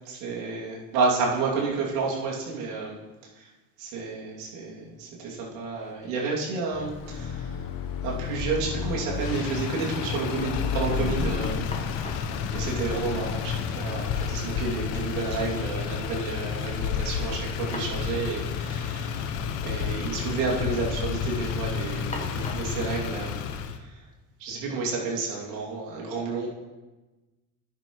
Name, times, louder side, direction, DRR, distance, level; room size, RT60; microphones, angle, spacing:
voice 1, 0.0-3.0 3.4-3.5 3.8-7.6 8.0-11.7 12.5-17.4 17.7-19.2 19.6-23.4 24.4-26.5, right 4 dB, 80° right, -3 dB, 2.7 m, -30 dB
sound 1, 5.2-5.3 5.6-6.2 6.5-7.4 7.7-7.8 11.2-11.3 11.7-12.4 13.5-13.6 14.0-14.1 17.3-18.1 18.4-18.5 19.4-19.6 19.9-20.4 20.8-21.2 22.1-22.8, left 2 dB, 15° left, 1.6 m, -42 dB
Car passing by / Accelerating revving vroom, 6.7-14.0, left 6 dB, 45° left, 1.0 m, -32 dB
Motor vehicle (road), 9.1-23.8, left 7 dB, 75° left, 1.0 m, -31 dB
13.0 x 10.5 x 3.1 m, 1.2 s
hypercardioid pair, 65°, 45 cm